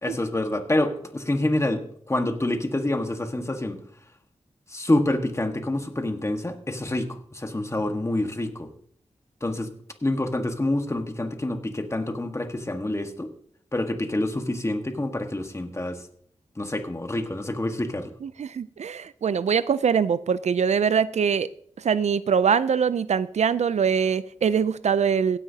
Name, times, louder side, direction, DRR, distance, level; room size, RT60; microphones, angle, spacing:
voice 1, 0.0-3.8 4.7-8.7 9.4-9.7 10.0-13.3 13.7-16.0 16.6-18.1, left 1 dB, 25° left, 5 dB, 1.5 m, -27 dB
voice 2, 18.2-21.5 21.8-25.4, right 7 dB, 75° right, 16 dB, 0.4 m, -23 dB
16.5 x 9.8 x 2.8 m, 0.63 s
wide cardioid pair, 65°, 12 cm